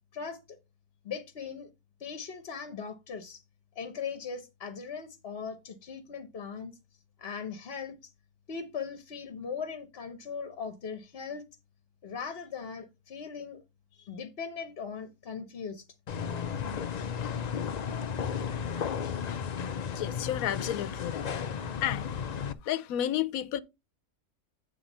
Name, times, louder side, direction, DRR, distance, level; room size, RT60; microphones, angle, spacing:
voice 1, 0.1-0.6 1.0-1.7 2.0-3.4 3.8-6.7 7.2-8.1 8.5-11.5 12.0-13.6 13.9-15.9, left 6 dB, 50° left, 1.0 m, -39 dB
sound 1, 16.1-22.5, left 7 dB, 65° left, 0.4 m, -34 dB
voice 2, 19.8-21.3 21.8-22.1 22.6-23.6, left 11 dB, 90° left, 1.1 m, -32 dB
8.8 x 3.5 x 5.3 m
omnidirectional pair, 1.4 m